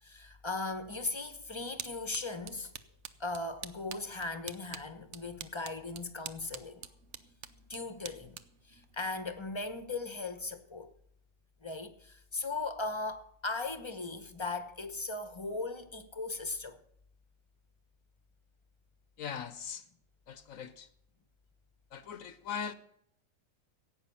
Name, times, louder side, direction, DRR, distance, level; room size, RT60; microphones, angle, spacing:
voice 1, 0.0-2.7 3.2-6.9 7.7-8.4 8.7-10.9 11.6-16.8, left 3 dB, 25° left, 1.0 m, -38 dB
sound 1, 1.1-9.8, right 8 dB, 65° right, 1.1 m, -48 dB
voice 2, 19.2-19.8 20.3-20.9 21.9-22.7, left 7 dB, 80° left, 1.3 m, -40 dB
16.0 x 9.0 x 5.7 m
omnidirectional pair, 1.4 m